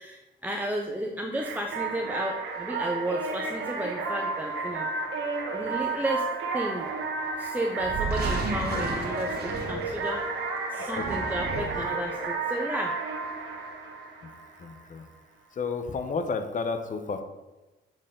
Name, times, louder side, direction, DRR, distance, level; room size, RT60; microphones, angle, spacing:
voice 1, 0.0-4.9 5.5-6.3 6.5-6.9 7.4-10.2 10.7-13.0, right 1 dB, 10° right, 2 dB, 0.5 m, -33 dB
sound 1, 1.3-14.8, right 3 dB, 80° right, 1.3 m, -32 dB
sound 2, 7.8-10.3 10.8-12.0, right 3 dB, 50° right, 1.6 m, -33 dB
voice 2, 14.6-15.0 15.6-17.2, left 4 dB, 40° left, 8 dB, 0.7 m, -32 dB
7.2 x 4.5 x 3.7 m, 1.1 s
cardioid pair, 90°, 20 cm